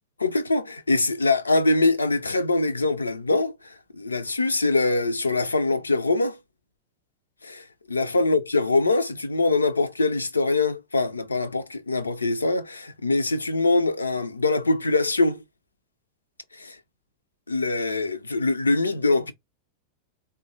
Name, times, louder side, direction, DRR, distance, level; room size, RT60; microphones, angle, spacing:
voice 1, 0.2-6.4 7.4-15.4 16.6-16.8 17.5-19.3, left 3 dB, 80° left, 0.4 m, -23 dB
3.9 x 2.2 x 2.6 m
figure-of-eight pair, 90°, 0 cm